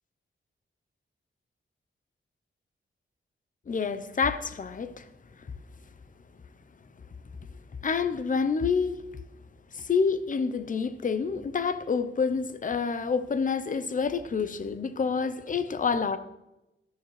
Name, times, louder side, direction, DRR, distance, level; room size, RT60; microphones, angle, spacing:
voice 1, 3.7-5.1 7.8-9.0 9.7-16.2, left 5 dB, 40° left, 12 dB, 0.6 m, -28 dB
13.0 x 12.5 x 3.2 m, 0.94 s
wide cardioid pair, 170°, 21 cm